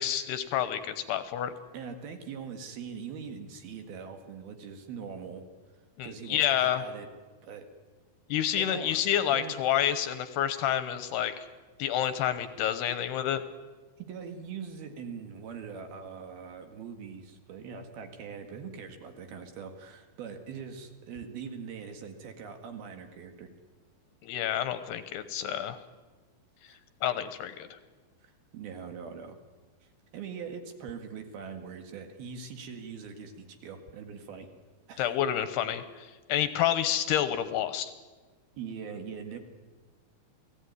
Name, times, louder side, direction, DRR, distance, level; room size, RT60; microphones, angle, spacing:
voice 1, 0.0-1.5 6.0-6.8 8.3-11.5 11.8-13.4 24.2-25.8 27.0-27.8 35.0-37.9, left 10 dB, 75° left, 11 dB, 2.9 m, -29 dB
voice 2, 1.7-5.4 6.0-7.1 7.4-7.7 8.6-9.0 9.3-9.5 14.0-23.5 26.7-26.8 28.2-29.4 30.1-34.5 34.9-35.1 38.5-39.4, right 6 dB, 60° right, 6 dB, 3.5 m, -42 dB
29.0 x 18.5 x 9.6 m, 1.3 s
omnidirectional pair, 5.2 m